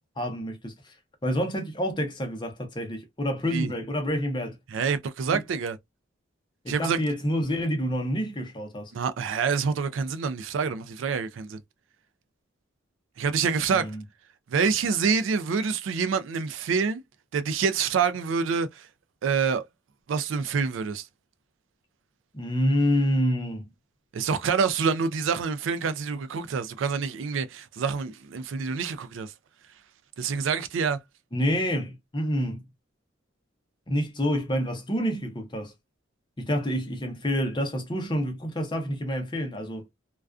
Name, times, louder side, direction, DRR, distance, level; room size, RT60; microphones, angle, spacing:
voice 1, 0.2-1.0 1.2-4.6 5.3-5.4 6.6-8.9 13.7-14.0 22.3-23.7 31.3-32.6 33.9-35.7 36.4-39.9, equal, 25° left, 0.6 m, -28 dB
voice 2, 4.7-5.8 6.7-7.0 8.9-11.6 13.2-13.9 14.5-17.0 17.3-18.9 19.2-19.6 20.1-21.1 24.1-29.3 30.2-31.0, right 5 dB, 80° right, 0.4 m, -27 dB
2.3 x 2.3 x 2.3 m
head